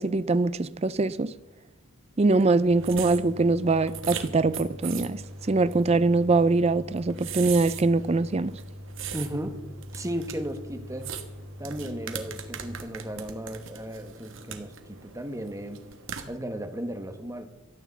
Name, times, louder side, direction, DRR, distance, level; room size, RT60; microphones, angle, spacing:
voice 1, 0.0-1.3 2.2-5.2 5.5-8.5, right 3 dB, 30° right, 0.4 m, -23 dB
sound 1, 2.2-16.3, right 8 dB, 65° right, 1.4 m, -41 dB
sound 2, 2.7-12.8, left 1 dB, 5° left, 2.1 m, -43 dB
voice 2, 9.1-9.5 9.9-11.1 11.6-15.8 16.3-17.5, right 1 dB, 15° right, 1.2 m, -35 dB
13.5 x 9.3 x 7.2 m
head